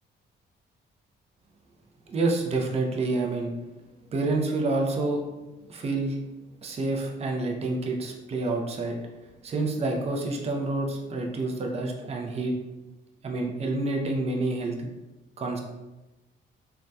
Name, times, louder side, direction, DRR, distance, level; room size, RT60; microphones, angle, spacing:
voice 1, 2.1-3.5 4.1-5.2 5.7-6.2 6.6-9.0 9.4-12.5 13.2-14.8 15.4-15.6, right 2 dB, 30° right, 1 dB, 0.4 m, -28 dB
2.6 x 2.2 x 2.2 m, 1.1 s
cardioid pair, 90°, 20 cm